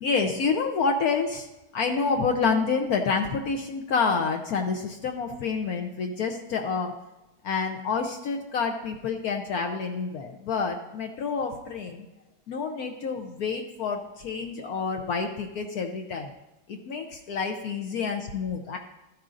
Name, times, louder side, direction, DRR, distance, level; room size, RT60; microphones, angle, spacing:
voice 1, 0.0-1.5 1.7-6.9 7.4-12.1 12.5-16.3 16.7-18.8, left 5 dB, 65° left, 3 dB, 1.1 m, -28 dB
13.5 x 10.5 x 2.5 m, 1.0 s
omnidirectional pair, 1.8 m